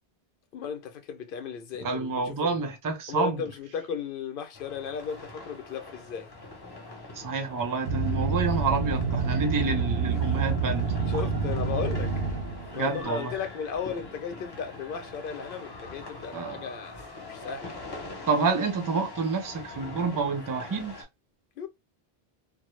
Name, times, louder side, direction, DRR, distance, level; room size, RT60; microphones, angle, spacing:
voice 1, 0.5-2.6 3.1-6.3 11.1-12.1 12.7-17.9 21.6-21.7, left 7 dB, 65° left, 0.7 m, -35 dB
voice 2, 1.8-3.4 7.1-11.2 12.7-13.4 16.3-16.6 18.3-21.1, right 4 dB, 35° right, 0.3 m, -29 dB
sound 1, 4.5-21.0, left 2 dB, 30° left, 0.5 m, -43 dB
sound 2, 7.9-12.9, right 4 dB, 60° right, 0.7 m, -28 dB
2.0 x 2.0 x 3.0 m
omnidirectional pair, 1.0 m